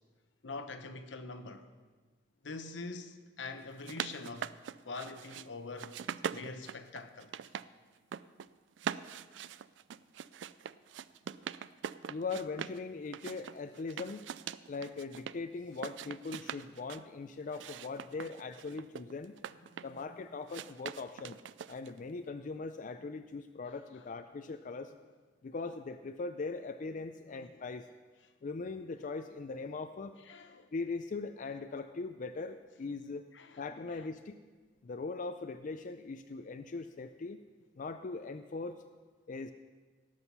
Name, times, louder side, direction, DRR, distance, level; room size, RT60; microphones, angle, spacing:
voice 1, 0.4-1.7 2.4-4.6 4.8-6.0 6.3-7.3 19.7-20.3 23.6-24.1 27.3-27.6 30.2-30.7 33.3-34.1, left 3 dB, 80° left, 0.9 m, -45 dB
sound 1, 3.6-5.5 5.8-7.7 8.0-8.5 8.8-12.8 13.1-15.4 15.7-17.0 17.5-20.0 20.5-22.0, right 8 dB, 75° right, 0.3 m, -42 dB
voice 2, 12.1-14.3 14.7-19.3 19.8-21.4 21.7-24.9 25.4-27.9 28.4-30.1 30.7-33.2 33.6-34.4 34.8-37.4 37.8-38.8 39.3-39.5, left 3 dB, 45° left, 0.4 m, -40 dB
18.0 x 6.3 x 5.5 m
head